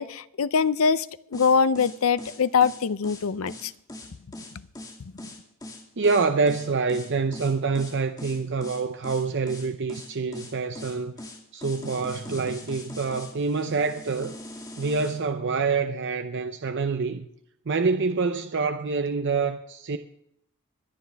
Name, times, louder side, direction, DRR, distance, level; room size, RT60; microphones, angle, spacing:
voice 1, 0.0-3.7 5.0-5.3, left 6 dB, 65° left, 0.5 m, -23 dB
sound 1, 1.3-15.2, left 1 dB, 20° left, 2.3 m, -41 dB
voice 2, 6.0-11.1 11.5-14.4 14.8-17.3 17.7-20.0, right 4 dB, 55° right, 0.6 m, -26 dB
24.5 x 9.7 x 3.4 m
head